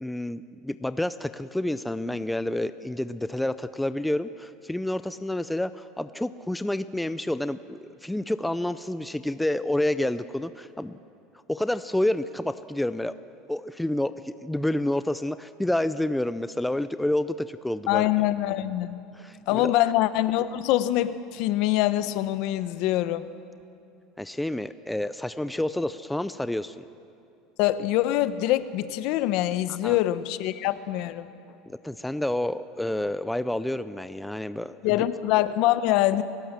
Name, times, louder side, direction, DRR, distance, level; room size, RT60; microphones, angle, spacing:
voice 1, 0.0-11.0 11.5-13.1 13.5-18.1 19.1-19.7 24.2-26.9 29.8-30.0 31.8-35.1, left 1 dB, 5° left, 12 dB, 0.5 m, -29 dB
voice 2, 17.9-19.0 19.5-23.3 27.6-31.3 34.8-36.2, left 14 dB, 60° left, 13 dB, 1.0 m, -24 dB
29.5 x 17.0 x 7.5 m, 2.6 s
supercardioid pair, 145°, 0 cm